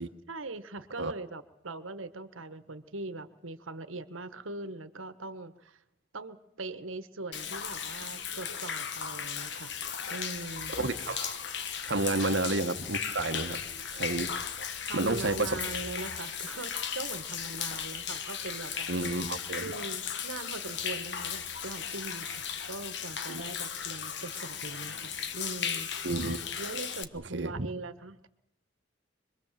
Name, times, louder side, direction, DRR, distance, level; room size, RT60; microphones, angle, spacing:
voice 1, 0.3-5.8 6.1-9.7 10.1-10.8 12.2-12.3 14.9-18.9 19.6-25.9 26.6-28.3, right 2 dB, 90° right, 12 dB, 1.4 m, -41 dB
Human voice / Rain / Stream, 7.3-27.0, left 7 dB, 60° left, 1.3 m, -36 dB
voice 2, 10.8-11.4 11.9-13.6 13.9-14.4 14.9-15.6 18.9-19.7 23.3-23.4 26.0-26.4 27.3-27.7, right 2 dB, 60° right, 9 dB, 1.3 m, -31 dB
25.5 x 21.5 x 7.5 m, 0.80 s
head